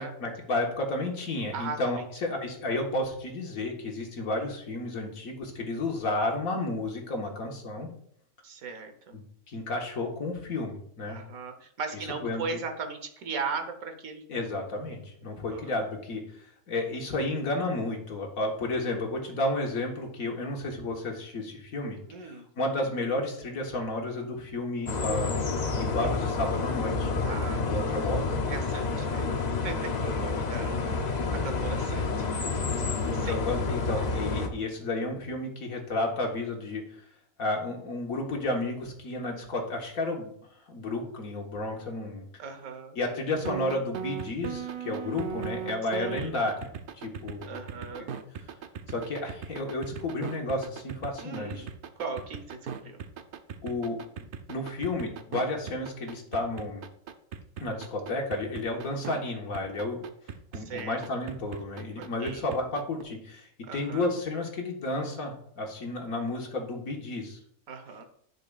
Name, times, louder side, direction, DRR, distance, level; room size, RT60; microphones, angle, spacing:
voice 1, 0.0-7.9 9.1-11.2 12.2-12.6 14.3-22.0 22.2-25.4 25.8-27.1 27.6-28.4 33.1-36.8 37.4-40.3 40.7-42.2 43.0-46.7 47.0-47.6 48.9-51.7 53.6-56.8 57.6-60.0 60.5-67.4, left 2 dB, 65° left, 1 dB, 1.7 m, -32 dB
voice 2, 1.5-2.0 4.2-4.3 8.4-9.2 11.1-14.2 15.5-15.7 22.1-22.4 27.2-27.6 28.5-29.3 29.6-31.0 31.3-32.3 33.1-33.3 42.4-43.0 46.0-46.3 47.5-48.1 51.2-51.7 52.0-53.0 60.5-61.0 62.0-62.4 63.7-64.1 67.7-68.0, right 5 dB, 65° right, 6 dB, 1.5 m, -38 dB
sound 1, 24.9-34.5, left 4 dB, 45° left, 0.5 m, -29 dB
sound 2, 43.4-59.2 59.5-63.0, right 8 dB, 85° right, 0.4 m, -38 dB
10.5 x 6.5 x 2.4 m, 0.66 s
omnidirectional pair, 1.6 m